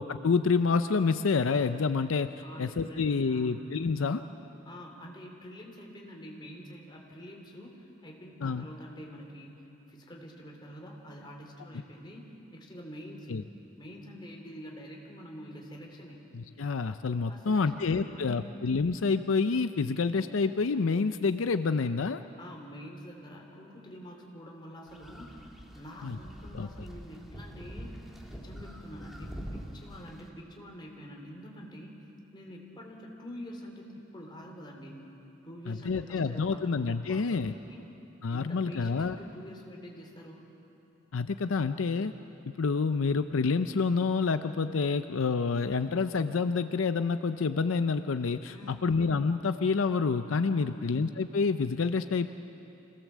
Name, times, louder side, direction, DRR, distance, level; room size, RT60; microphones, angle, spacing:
voice 1, 0.0-2.3 2.6-4.2 8.4-8.6 13.3-13.4 16.3-22.2 26.0-26.2 26.5-26.7 35.7-37.5 38.2-39.2 41.1-42.1 42.5-52.3, left 4 dB, 80° left, 10 dB, 0.5 m, -28 dB
voice 2, 2.4-3.8 4.6-12.2 12.5-13.4 13.8-16.2 17.3-18.5 22.4-25.4 25.7-28.0 28.3-31.9 32.3-35.1 35.4-37.8 38.3-40.4 48.5-48.9 50.5-50.9, equal, 25° left, 0 dB, 3.2 m, -46 dB
sound 1, 24.9-30.3, equal, ahead, 2.0 m, -45 dB
25.5 x 17.5 x 7.4 m, 2.8 s
head